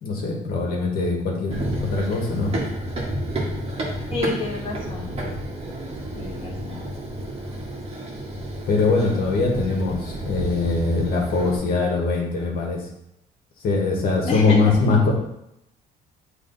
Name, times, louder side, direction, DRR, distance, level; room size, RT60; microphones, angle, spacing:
voice 1, 0.0-1.5 1.8-2.6 8.7-12.8 13.6-15.1, left 3 dB, 60° left, -1 dB, 1.5 m, -22 dB
Run, 1.5-11.6, right 1 dB, 35° right, 1.6 m, -31 dB
voice 2, 4.1-5.1 6.2-6.8 14.3-14.6, left 3 dB, 35° left, -3 dB, 1.1 m, -29 dB
7.6 x 3.3 x 4.0 m, 0.82 s
cardioid pair, 110°, 17 cm